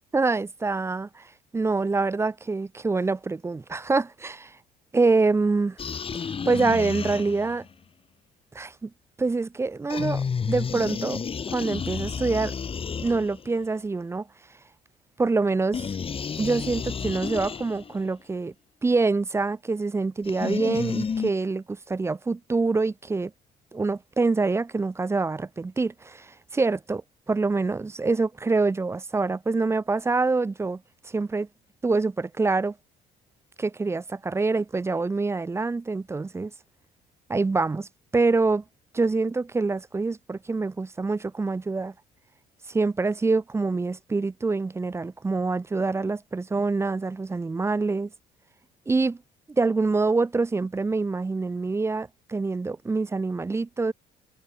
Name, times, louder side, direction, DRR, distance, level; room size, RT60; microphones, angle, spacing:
voice 1, 0.1-4.6 4.9-5.8 6.1-7.7 8.5-8.9 9.2-11.2 11.5-12.5 13.0-14.3 15.2-15.9 16.4-18.5 18.8-23.3 23.7-27.0 27.3-31.5 31.8-32.8 33.6-36.5 37.3-38.6 38.9-41.9 42.7-48.1 48.9-49.2 49.5-53.9, right 3 dB, 15° right, 0.6 m, -25 dB
sound 1, 5.8-7.7 9.9-13.6 15.7-18.0 20.2-21.3, left 6 dB, 35° left, 2.3 m, -31 dB
cardioid pair, 110°, 17 cm